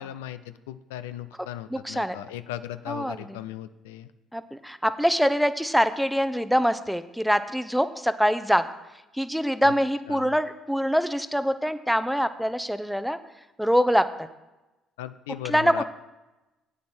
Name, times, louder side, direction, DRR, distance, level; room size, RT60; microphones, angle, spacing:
voice 1, 0.0-4.1 9.6-9.7 10.1-10.4 15.0-15.8, left 12 dB, 90° left, 12 dB, 0.4 m, -37 dB
voice 2, 1.7-2.2 2.9-3.4 4.3-8.7 9.1-13.2 13.6-14.1 15.4-15.8, equal, ahead, 12 dB, 0.7 m, -24 dB
9.7 x 8.6 x 4.4 m, 1.0 s
hypercardioid pair, 60°, 0 cm